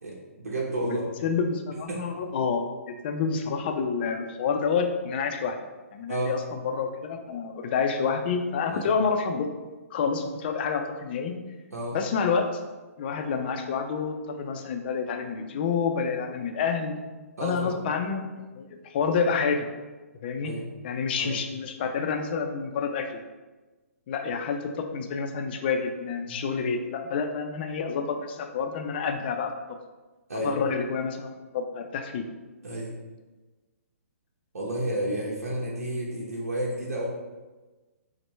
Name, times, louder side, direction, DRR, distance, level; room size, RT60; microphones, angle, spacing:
voice 1, 0.0-1.1 1.9-2.0 6.1-6.4 8.7-8.9 11.7-12.0 17.4-17.7 20.4-20.7 21.2-21.4 26.3-26.5 30.3-30.6 32.6-32.9 34.5-37.1, right 1 dB, 80° right, -4 dB, 0.8 m, -31 dB
voice 2, 0.8-5.6 5.9-9.5 9.9-11.4 11.9-12.6 13.0-17.0 17.4-18.3 18.5-19.6 20.2-20.5 20.8-23.2 24.1-29.5 30.4-32.2, left 5 dB, 40° left, 5 dB, 0.4 m, -28 dB
4.3 x 2.1 x 3.1 m, 1.2 s
hypercardioid pair, 140°, 8 cm